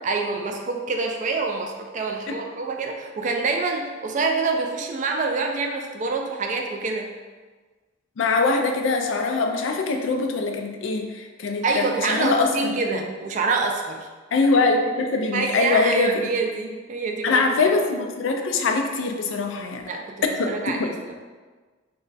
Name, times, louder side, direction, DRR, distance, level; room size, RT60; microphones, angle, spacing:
voice 1, 0.0-7.1 11.6-14.1 15.3-17.4 19.9-21.1, right 3 dB, 40° right, 3 dB, 0.3 m, -26 dB
voice 2, 8.2-13.0 14.3-16.2 17.2-19.9 20.4-20.9, left 3 dB, 70° left, 4 dB, 0.4 m, -23 dB
3.1 x 2.2 x 3.9 m, 1.4 s
head